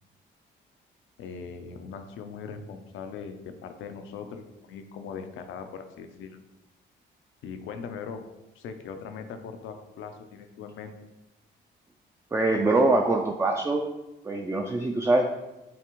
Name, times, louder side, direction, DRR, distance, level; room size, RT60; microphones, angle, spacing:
voice 1, 1.2-6.4 7.4-8.2 8.5-10.9, left 6 dB, 80° left, 7 dB, 0.6 m, -40 dB
voice 2, 12.3-13.8 14.2-15.3, right 2 dB, 15° right, 2 dB, 0.4 m, -23 dB
7.0 x 2.4 x 3.0 m, 0.99 s
cardioid pair, 90°, 20 cm